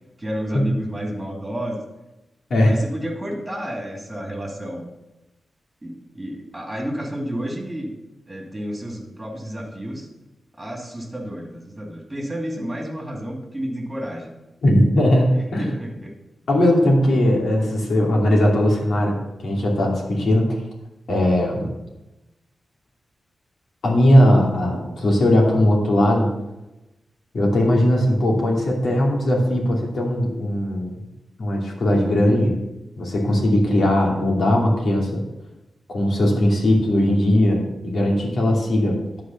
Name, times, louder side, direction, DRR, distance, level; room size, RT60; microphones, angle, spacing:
voice 1, 0.2-1.8 2.6-4.8 5.8-7.9 8.3-10.1 10.6-14.3 15.3-16.1, equal, 15° right, 0 dB, 2.5 m, -31 dB
voice 2, 14.6-15.7 16.5-20.5 21.1-21.7 23.8-26.3 27.3-31.0 31.4-32.5 33.0-35.2 35.9-39.0, left 1 dB, 65° left, -1 dB, 2.6 m, -19 dB
11.0 x 5.0 x 7.1 m, 0.98 s
wide cardioid pair, 125°, 0 cm